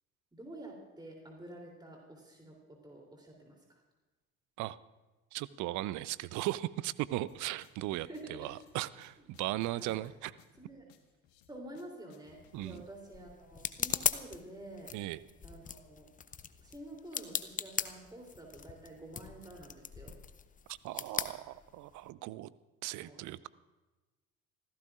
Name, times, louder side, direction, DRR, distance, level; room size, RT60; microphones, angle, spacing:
voice 1, 0.3-3.8 7.9-8.6 9.7-10.0 10.6-10.9 11.5-14.9 15.4-16.1 16.6-20.2 22.9-23.2, right 1 dB, 10° right, 0 dB, 3.2 m, -49 dB
voice 2, 5.3-10.3 12.5-12.8 14.9-15.2 20.7-22.5 22.8-23.5, right 16 dB, 45° right, 19 dB, 0.6 m, -37 dB
sound 1, 7.3-12.8, left 8 dB, 55° left, 1.6 m, -64 dB
sound 2, 12.3-22.1, left 7 dB, 20° left, 0.7 m, -40 dB
26.0 x 15.5 x 2.5 m, 1.2 s
figure-of-eight pair, 60°, 42 cm